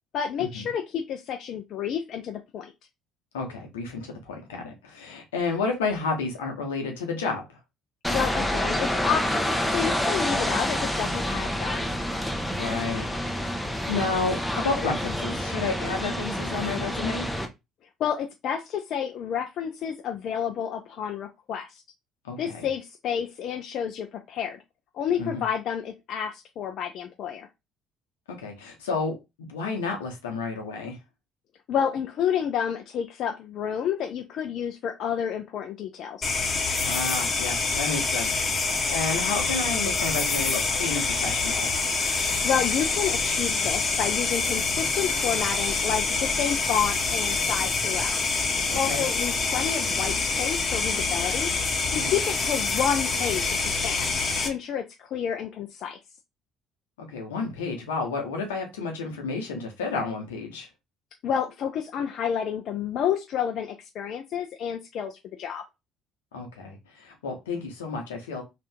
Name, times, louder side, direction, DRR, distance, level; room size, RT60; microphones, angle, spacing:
voice 1, 0.1-2.7 8.1-11.9 18.0-21.8 22.4-24.6 24.9-27.5 31.7-36.3 42.4-48.1 48.8-51.5 51.9-54.1 54.4-56.0 61.2-65.6, left 8 dB, 60° left, 0.4 m, -30 dB
voice 2, 3.3-7.4 12.6-13.0 13.9-17.3 22.2-22.7 25.2-25.4 28.3-31.0 36.8-41.7 48.7-49.0 51.9-52.2 57.0-60.7 66.3-68.4, left 4 dB, 85° left, 0.9 m, -31 dB
sound 1, 8.0-17.5, equal, 5° left, 0.7 m, -28 dB
sound 2, 36.2-54.5, left 4 dB, 40° left, 0.9 m, -26 dB
2.8 x 2.5 x 3.4 m
hypercardioid pair, 55°, 0 cm